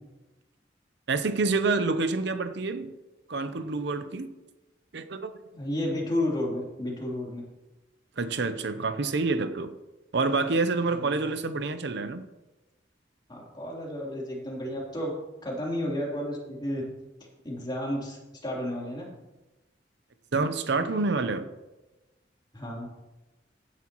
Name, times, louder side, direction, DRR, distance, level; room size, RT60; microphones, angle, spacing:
voice 1, 1.1-2.9 3.3-4.3 4.9-5.3 8.2-9.7 10.1-12.2 20.3-21.5, right 3 dB, 65° right, 0.7 m, -27 dB
voice 2, 5.5-7.4 10.9-11.1 13.3-15.1 15.4-16.8 17.4-19.1 22.5-22.9, left 1 dB, 25° left, 3.4 m, -32 dB
15.5 x 10.0 x 3.1 m
head